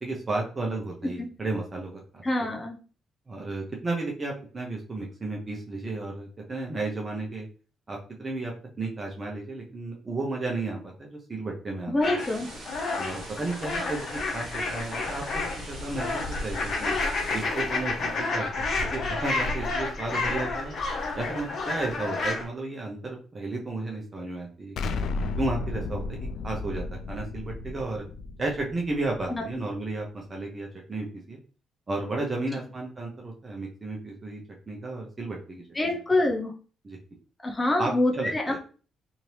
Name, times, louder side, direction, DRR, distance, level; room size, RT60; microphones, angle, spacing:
voice 1, 0.0-2.5 3.3-7.5 7.9-12.2 13.0-16.9 17.3-18.5 18.8-20.7 21.1-24.8 25.4-28.0 28.4-31.4 31.9-34.4 34.7-36.0 36.8-37.0 37.8-38.6, right 2 dB, 30° right, 0 dB, 0.7 m, -33 dB
voice 2, 2.2-2.8 11.9-12.5 29.3-29.4 35.7-36.5 37.4-38.4, left 2 dB, 20° left, 2 dB, 0.6 m, -25 dB
sound 1, 12.0-22.5, left 3 dB, 55° left, 0.9 m, -30 dB
sound 2, 12.2-17.4, right 2 dB, 60° right, 1.0 m, -45 dB
Explosion, 24.8-29.6, left 3 dB, 70° left, 0.3 m, -33 dB
2.8 x 2.7 x 3.1 m, 0.39 s
cardioid pair, 90°, 0 cm